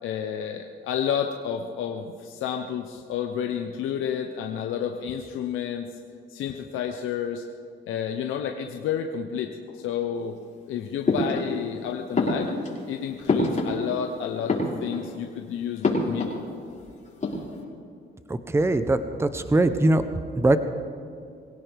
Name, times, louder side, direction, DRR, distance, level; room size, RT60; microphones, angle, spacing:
voice 1, 0.0-6.0 6.3-7.4 7.9-10.4 10.7-12.5 12.9-16.3, left 8 dB, 85° left, 4 dB, 0.9 m, -30 dB
sound 1, 11.0-11.8 12.1-14.1 14.4-15.2 15.8-16.8 17.1-17.6, left 2 dB, 40° left, 5.2 m, -27 dB
voice 2, 18.3-20.0 20.4-20.6, right 2 dB, 15° right, 10 dB, 0.8 m, -21 dB
23.5 x 17.0 x 3.5 m, 2.4 s
cardioid pair, 90°, 20 cm